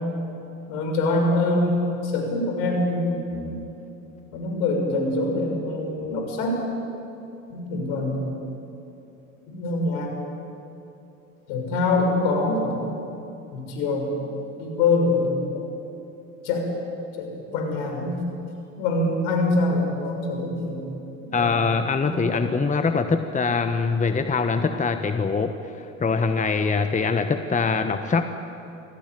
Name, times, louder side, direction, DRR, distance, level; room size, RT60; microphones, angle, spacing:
voice 1, 0.7-1.8 2.0-3.6 4.3-6.6 7.5-8.3 9.5-10.1 11.5-13.0 13.5-14.2 14.6-15.5 16.4-16.7 17.2-18.1 18.8-20.8 21.4-21.5 22.0-22.4, left 2 dB, 70° left, 2 dB, 6.4 m, -24 dB
voice 2, 21.3-28.3, left 4 dB, 20° left, 8 dB, 1.3 m, -23 dB
25.0 x 16.5 x 9.2 m, 2.9 s
hypercardioid pair, 70°, 38 cm